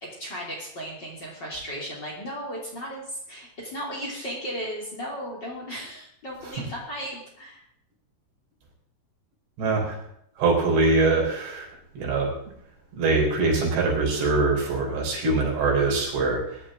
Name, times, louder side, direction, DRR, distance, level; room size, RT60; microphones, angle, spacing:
voice 1, 0.0-7.6, equal, 30° left, -3 dB, 3.0 m, -35 dB
voice 2, 9.6-10.0 10.4-11.7 12.0-12.3 13.0-16.4, right 3 dB, 85° right, -2 dB, 6.3 m, -23 dB
21.0 x 11.0 x 3.8 m, 0.73 s
omnidirectional pair, 4.9 m